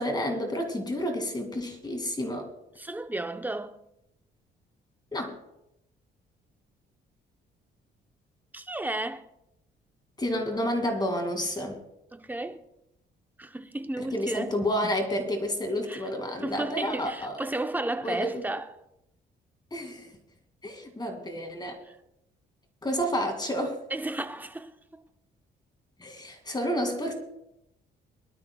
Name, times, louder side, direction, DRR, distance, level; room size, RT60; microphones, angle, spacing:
voice 1, 0.0-2.5 5.1-5.4 10.2-11.8 14.0-17.4 18.0-18.3 19.7-20.1 20.6-21.8 22.8-23.8 26.0-27.1, equal, 20° left, 2.4 m, -30 dB
voice 2, 2.8-3.8 8.5-9.3 12.1-12.6 13.4-14.5 15.9-16.0 16.4-18.7 21.9-22.0 23.9-25.0, right 2 dB, 10° right, 0.8 m, -33 dB
22.5 x 12.0 x 2.3 m
cardioid pair, 90°, 20 cm